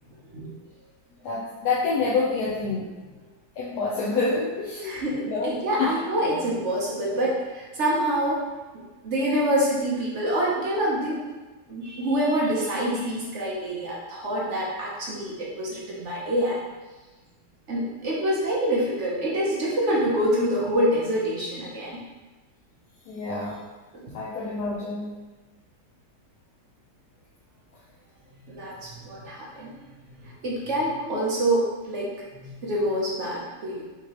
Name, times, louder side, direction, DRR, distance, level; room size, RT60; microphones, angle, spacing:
voice 1, 1.2-2.9 3.6-5.9 23.1-23.6 24.1-25.1, left 4 dB, 65° left, -6 dB, 1.0 m, -27 dB
voice 2, 4.8-8.4 8.7-11.2 11.7-16.6 17.7-22.0 24.0-24.1 28.5-29.7 30.2-33.8, right 1 dB, 55° right, -4 dB, 0.8 m, -26 dB
5.7 x 3.1 x 2.9 m, 1.2 s
omnidirectional pair, 2.2 m